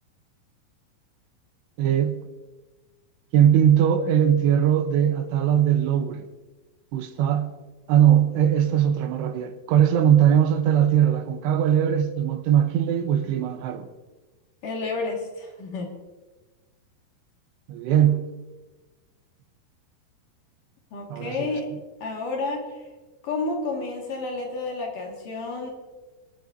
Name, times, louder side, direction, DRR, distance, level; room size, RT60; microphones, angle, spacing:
voice 1, 1.8-2.2 3.3-6.3 6.9-7.5 7.9-13.9 17.7-18.3 21.1-21.6, right 9 dB, 85° right, 3.0 m, -20 dB
voice 2, 14.6-15.9 20.9-21.7 22.0-22.6 23.2-25.7, left 3 dB, 55° left, 3.2 m, -30 dB
24.5 x 11.5 x 2.7 m
omnidirectional pair, 4.9 m